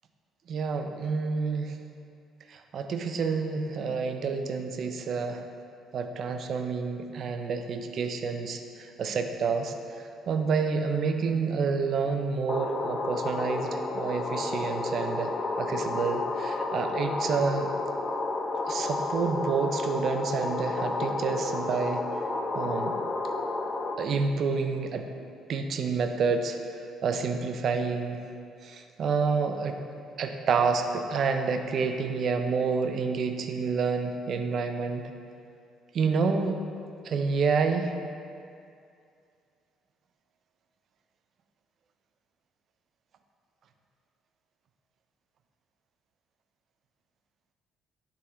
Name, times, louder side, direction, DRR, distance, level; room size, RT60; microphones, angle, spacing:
voice 1, 0.5-1.8 2.5-5.4 5.9-9.7 10.3-15.3 15.6-17.7 18.7-22.0 22.5-22.9 24.0-25.0 25.5-26.6 27.0-28.2 28.6-29.8 30.2-35.0 35.9-36.6 37.0-37.9, right 5 dB, 50° right, 6 dB, 0.4 m, -28 dB
sound 1, 12.5-24.0, left 3 dB, 30° left, 0.3 m, -31 dB
9.5 x 3.6 x 3.1 m, 2.4 s
cardioid pair, 135°, 0 cm